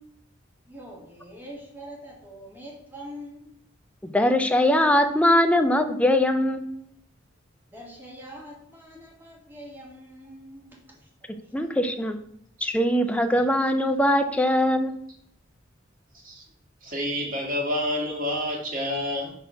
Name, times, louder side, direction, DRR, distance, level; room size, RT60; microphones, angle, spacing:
voice 1, 0.7-3.5 7.7-11.5, equal, 10° right, -2 dB, 1.8 m, -44 dB
voice 2, 4.1-6.7 11.5-12.2 12.6-14.9, left 1 dB, 5° left, 7 dB, 0.5 m, -21 dB
voice 3, 16.8-19.3, left 1 dB, 45° right, -1 dB, 1.9 m, -28 dB
5.7 x 4.1 x 5.6 m, 0.69 s
head